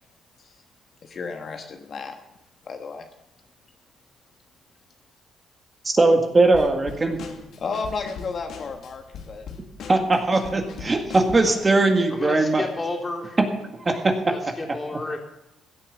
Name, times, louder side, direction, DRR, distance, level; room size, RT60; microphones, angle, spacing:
voice 1, 1.0-2.2 2.6-3.1 7.6-9.5, left 4 dB, 50° left, 4 dB, 1.3 m, -33 dB
voice 2, 5.9-7.2 9.9-12.6 13.9-14.1, right 2 dB, 30° right, 4 dB, 1.9 m, -20 dB
Drum kit / Snare drum, 6.5-11.7, left 6 dB, 70° left, 2.0 m, -40 dB
voice 3, 12.1-13.4 14.3-15.2, left 2 dB, 25° left, 0 dB, 3.7 m, -31 dB
16.0 x 8.7 x 7.1 m, 0.96 s
cardioid pair, 90°, 0 cm